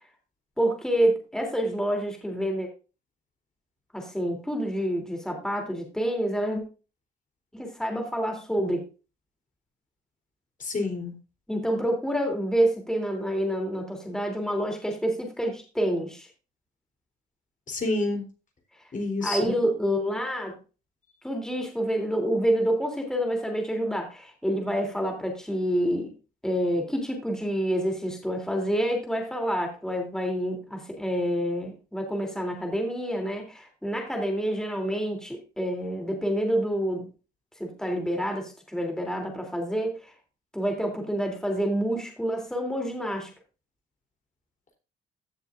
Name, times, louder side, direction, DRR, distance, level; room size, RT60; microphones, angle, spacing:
voice 1, 0.6-2.7 3.9-6.6 7.5-8.8 11.5-16.3 19.2-20.6 21.2-26.1 26.4-37.1 37.6-40.1 40.5-43.3, equal, 5° left, 2 dB, 3.1 m, -28 dB
voice 2, 10.6-11.1 17.7-18.2 18.9-19.6, left 2 dB, 40° left, 3 dB, 3.5 m, -28 dB
16.0 x 6.7 x 2.5 m, 0.32 s
cardioid pair, 90°, 20 cm